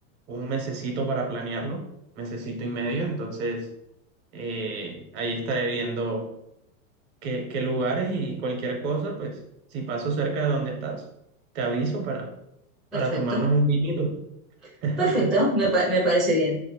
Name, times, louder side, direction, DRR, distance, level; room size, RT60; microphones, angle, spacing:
voice 1, 0.3-1.8 2.2-3.7 4.3-6.3 7.2-9.4 9.7-11.0 11.5-12.3 12.9-14.2 14.8-15.3, right 3 dB, 50° right, 1 dB, 1.0 m, -28 dB
voice 2, 12.9-13.5 15.0-16.6, right 1 dB, ahead, -7 dB, 0.4 m, -23 dB
2.9 x 2.8 x 2.9 m, 0.80 s
supercardioid pair, 130°, 44 cm